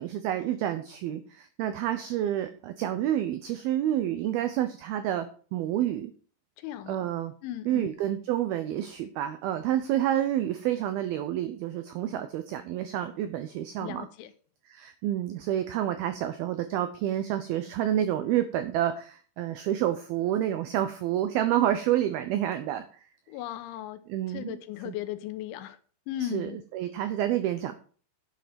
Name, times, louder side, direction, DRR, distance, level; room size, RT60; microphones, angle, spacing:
voice 1, 0.0-6.1 6.9-7.3 7.7-14.1 14.7-22.9 24.1-24.6 24.9-25.0 26.2-27.7, right 12 dB, 90° right, 2.1 m, -29 dB
voice 2, 6.6-7.1 7.4-7.9 13.8-14.3 23.3-24.0 24.3-25.8 26.1-26.6, left 12 dB, 80° left, 3.3 m, -36 dB
10.5 x 7.7 x 5.1 m
omnidirectional pair, 5.4 m